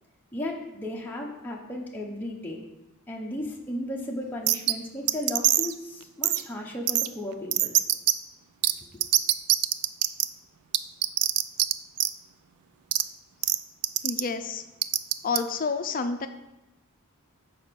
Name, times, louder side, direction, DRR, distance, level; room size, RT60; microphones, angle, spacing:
voice 1, 0.3-2.6 3.1-7.7 8.6-9.0, left 1 dB, 10° left, -2 dB, 0.7 m, -35 dB
sound 1, 4.5-4.7 5.1-5.7 6.2-6.4 6.9-7.1 7.5-8.1 8.6-8.7 9.0-10.2 10.7-11.7 12.0-12.1 12.9-13.0 13.4-13.6 13.8-14.2 14.8-15.4, right 14 dB, 85° right, 0.3 m, -22 dB
voice 2, 14.0-14.6 15.2-16.3, left 4 dB, 40° left, 8 dB, 0.5 m, -29 dB
6.4 x 4.9 x 5.1 m, 0.96 s
head